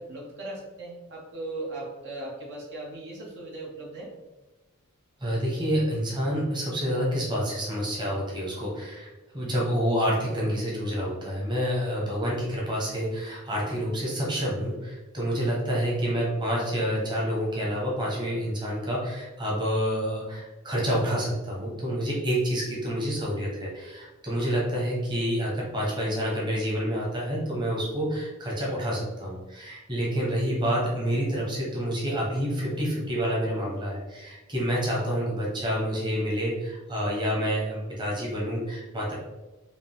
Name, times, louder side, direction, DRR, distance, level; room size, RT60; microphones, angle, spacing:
voice 1, 0.0-4.1, right 2 dB, 55° right, -3 dB, 0.9 m, -38 dB
voice 2, 5.2-39.1, equal, 20° right, -4 dB, 1.1 m, -28 dB
5.0 x 2.6 x 3.4 m, 1.1 s
head